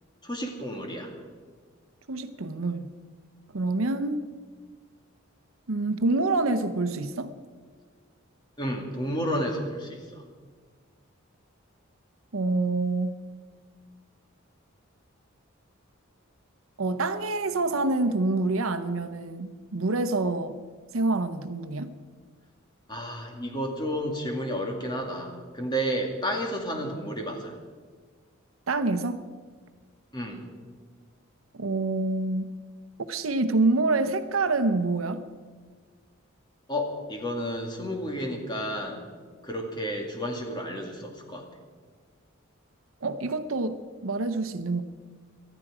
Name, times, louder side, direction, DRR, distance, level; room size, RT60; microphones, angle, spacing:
voice 1, 0.2-1.1 8.6-10.2 22.9-27.5 30.1-30.4 36.7-39.1 39.4-41.5, equal, 20° left, 2.2 m, -31 dB
voice 2, 2.1-2.9 3.5-4.3 5.7-7.3 12.3-13.2 16.8-20.6 20.9-22.0 28.7-29.2 31.5-32.5 33.1-35.2 43.0-44.8, right 2 dB, 80° right, 0.8 m, -26 dB
19.0 x 13.0 x 4.9 m
head